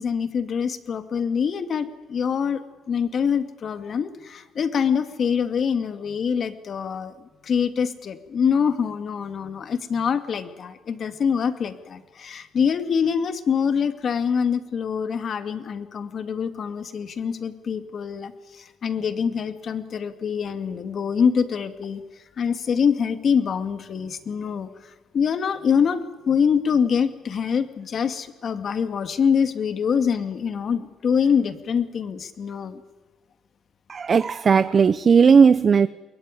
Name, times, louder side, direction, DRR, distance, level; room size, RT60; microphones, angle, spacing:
voice 1, 0.0-7.1 7.4-22.0 22.4-32.8, left 7 dB, 55° left, 9 dB, 2.1 m, -25 dB
voice 2, 33.9-35.9, right 6 dB, 45° right, 14 dB, 0.7 m, -16 dB
22.0 x 21.5 x 9.9 m, 1.2 s
cardioid pair, 90°, 0 cm